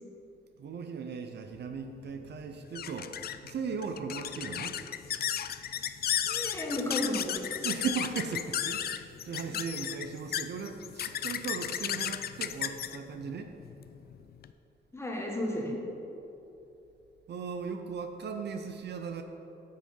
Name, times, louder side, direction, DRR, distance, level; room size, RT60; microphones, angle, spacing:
voice 1, 0.6-3.1 3.4-4.8 7.6-13.5 17.3-19.2, right 6 dB, 60° right, 6 dB, 0.6 m, -37 dB
sound 1, 1.6-14.5, left 10 dB, 55° left, 0.4 m, -35 dB
voice 2, 6.2-7.6 9.5-9.6 14.9-15.7, left 1 dB, 15° left, -1 dB, 1.5 m, -33 dB
8.0 x 6.4 x 5.5 m, 2.9 s
cardioid pair, 105°, 20 cm